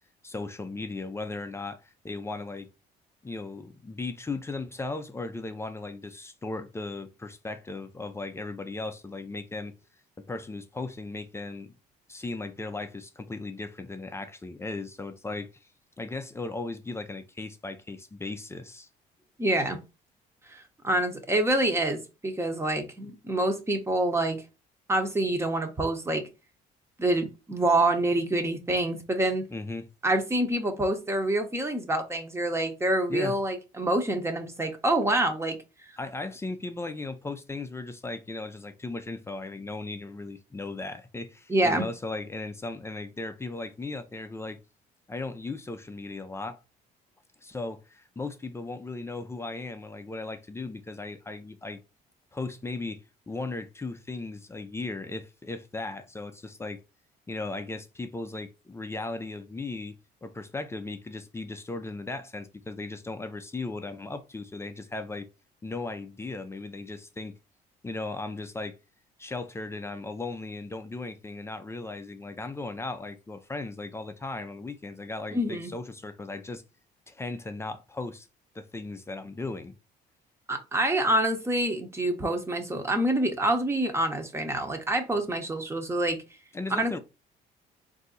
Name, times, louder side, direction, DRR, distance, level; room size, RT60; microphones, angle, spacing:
voice 1, 0.2-2.7 3.2-9.7 10.3-11.7 12.1-15.7 16.0-18.9 29.5-29.9 33.1-33.3 36.0-44.6 45.1-46.6 47.4-51.8 52.3-56.8 57.3-60.0 60.2-65.3 65.6-67.3 67.8-68.8 69.2-76.6 77.1-78.3 78.5-79.7 86.5-87.0, left 3 dB, 15° left, 0.5 m, -37 dB
voice 2, 19.4-19.8 20.5-24.4 24.9-26.3 27.0-29.4 30.0-35.6 41.5-41.9 75.3-75.7 80.5-86.2 86.7-87.0, right 1 dB, 15° right, 1.0 m, -26 dB
3.9 x 2.7 x 3.8 m
cardioid pair, 110°, 17 cm